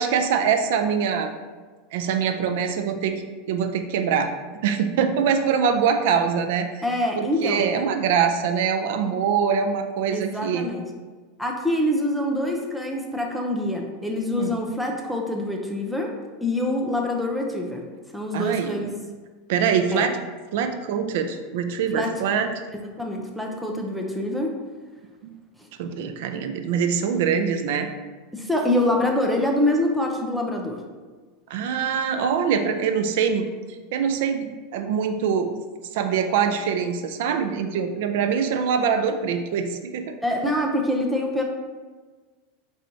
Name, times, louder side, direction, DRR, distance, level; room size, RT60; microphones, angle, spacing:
voice 1, 0.0-1.3 1.9-4.3 4.6-6.7 7.2-10.7 14.4-14.5 18.3-18.8 19.5-20.2 20.5-22.5 25.8-27.9 31.5-33.5 33.9-35.5 35.9-40.1, right 7 dB, 60° right, 7 dB, 0.4 m, -23 dB
voice 2, 6.8-7.7 9.0-9.1 10.1-10.9 11.4-16.1 16.4-18.9 19.9-20.1 21.9-22.1 22.7-24.6 25.6-25.7 28.3-30.8 40.2-41.4, left 1 dB, ahead, 0 dB, 0.4 m, -25 dB
4.7 x 4.3 x 2.6 m, 1.4 s
supercardioid pair, 170°, 0 cm